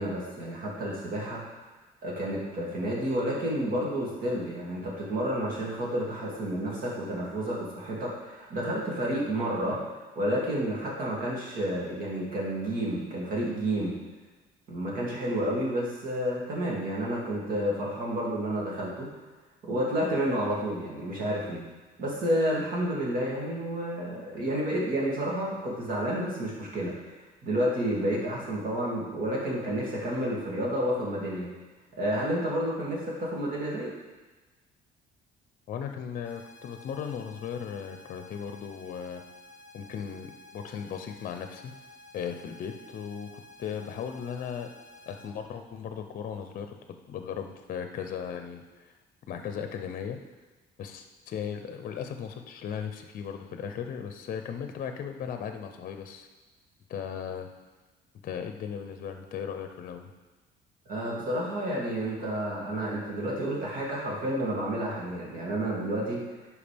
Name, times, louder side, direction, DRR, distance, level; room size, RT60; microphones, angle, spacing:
voice 1, 0.0-1.4 2.0-14.0 14.7-19.1 19.7-21.6 22.0-26.9 27.4-31.5 32.0-33.9 60.9-66.2, right 1 dB, 55° right, -4 dB, 2.6 m, -30 dB
voice 2, 35.7-39.2 39.7-41.7 42.1-44.7 45.1-46.8 47.1-48.9 49.3-50.2 50.8-56.3 56.9-57.5 58.2-60.1, left 7 dB, 55° left, 6 dB, 0.6 m, -37 dB
sound 1, 36.2-45.2, left 2 dB, 10° right, 2.4 m, -52 dB
10.5 x 4.8 x 3.5 m, 1.2 s
cardioid pair, 110°, 17 cm